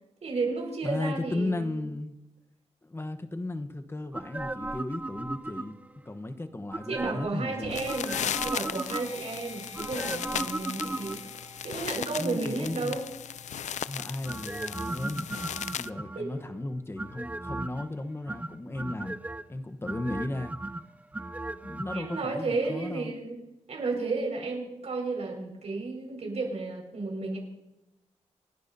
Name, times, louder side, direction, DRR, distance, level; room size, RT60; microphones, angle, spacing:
voice 1, 0.2-1.8 6.9-11.2 11.6-13.1 16.1-16.6 21.9-23.4 23.7-27.4, right 3 dB, 70° right, 0 dB, 5.3 m, -33 dB
voice 2, 0.8-2.2 2.8-5.7 6.0-7.8 12.2-13.0 13.8-15.4 15.8-19.2 19.5-20.6 21.6-23.1, left 2 dB, 20° left, 9 dB, 1.0 m, -35 dB
sound 1, 4.1-6.0 6.7-7.4 7.9-9.3 9.7-11.4 14.2-16.4 17.0-17.9 18.3-19.4 19.8-22.2 22.5-22.6, right 2 dB, 10° right, 0.4 m, -36 dB
sound 2, 7.6-15.9, left 9 dB, 85° left, 0.4 m, -36 dB
sound 3, 9.0-16.1, equal, 35° right, 5.2 m, -53 dB
28.5 x 11.0 x 2.7 m, 0.93 s
wide cardioid pair, 95°, 12 cm